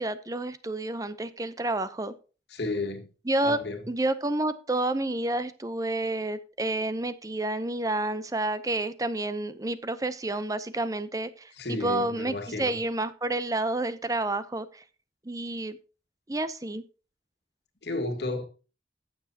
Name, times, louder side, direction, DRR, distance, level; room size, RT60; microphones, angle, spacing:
voice 1, 0.0-2.1 3.3-3.6 3.9-14.8 15.3-15.8 16.3-16.8, right 2 dB, 20° right, 0.6 m, -29 dB
voice 2, 2.5-3.1 3.4-3.8 11.6-12.8 17.8-18.5, left 2 dB, 70° left, 1.8 m, -32 dB
15.0 x 7.1 x 2.8 m
head